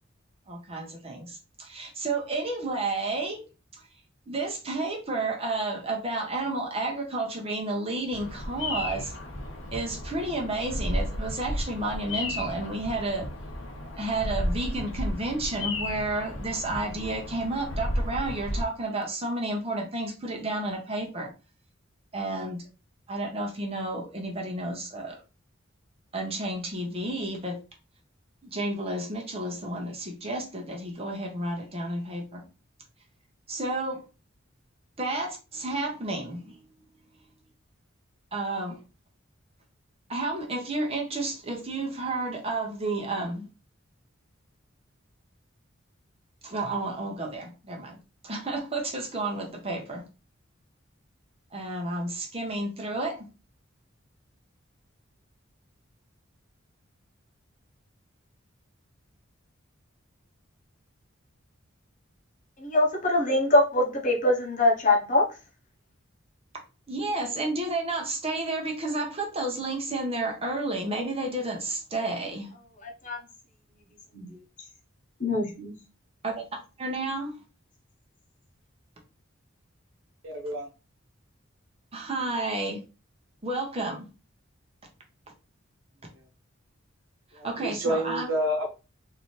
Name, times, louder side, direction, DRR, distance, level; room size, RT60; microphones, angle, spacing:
voice 1, 0.5-3.4 4.3-9.1 9.7-13.3 13.9-21.3 22.1-22.6 23.1-25.2 26.1-27.6 28.5-32.4 33.5-34.0 35.0-36.6 38.3-38.8 40.1-43.5 46.4-48.0 48.2-50.1 51.5-53.3 66.9-72.5 76.2-76.4 76.8-77.3 81.9-82.8 83.4-84.1 87.4-88.3, right 2 dB, 30° right, 1.0 m, -31 dB
Bird vocalization bird call bird song, 8.1-18.6, left 1 dB, 65° left, 0.8 m, -33 dB
voice 2, 62.6-65.2 72.8-73.2 74.1-74.3 75.2-75.7, left 1 dB, 40° left, 1.0 m, -23 dB
voice 3, 80.2-80.7 87.3-88.7, equal, 75° right, 1.1 m, -29 dB
3.9 x 2.8 x 3.2 m
head